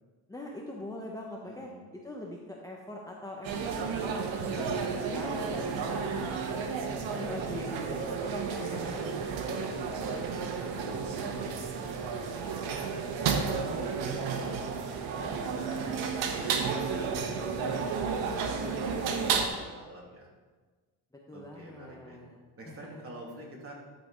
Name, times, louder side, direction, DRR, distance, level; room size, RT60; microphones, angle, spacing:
voice 1, 0.3-1.7 2.0-6.3 7.2-9.3 21.3-22.4 22.7-23.0, left 1 dB, 10° left, -2 dB, 0.9 m, -42 dB
voice 2, 1.4-1.8 4.4-5.2 8.4-9.1 9.5-14.7 15.1-20.3 21.3-22.2 22.6-23.7, right 1 dB, 30° right, -3 dB, 2.7 m, -47 dB
sound 1, 3.4-19.5, right 5 dB, 75° right, 1.1 m, -32 dB
11.5 x 4.2 x 5.1 m, 1.4 s
cardioid pair, 100°, 45 cm